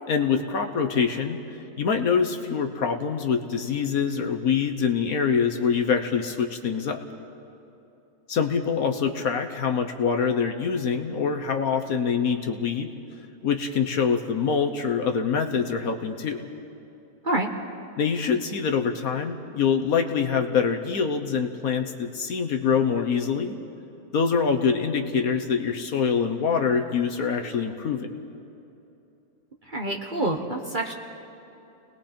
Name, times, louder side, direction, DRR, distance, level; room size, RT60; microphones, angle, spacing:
voice 1, 0.1-7.0 8.3-12.9 13.4-16.5 18.0-23.6 24.1-28.1, left 6 dB, 60° left, 6 dB, 1.4 m, -25 dB
voice 2, 29.7-30.9, right 1 dB, 30° right, 2 dB, 1.2 m, -27 dB
29.5 x 20.0 x 4.4 m, 2.9 s
omnidirectional pair, 1.8 m